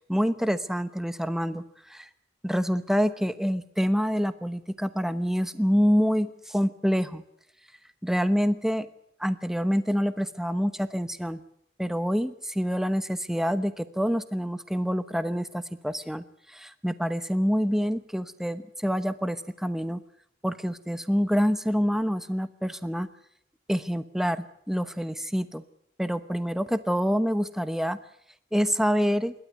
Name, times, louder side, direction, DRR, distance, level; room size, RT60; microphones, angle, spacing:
voice 1, 0.1-1.6 1.9-2.1 2.4-7.2 8.0-8.9 9.2-11.4 11.8-16.2 16.5-20.0 20.4-23.1 23.7-25.6 26.0-28.0 28.5-29.3, equal, ahead, 12 dB, 1.0 m, -26 dB
28.0 x 12.5 x 9.4 m, 0.69 s
head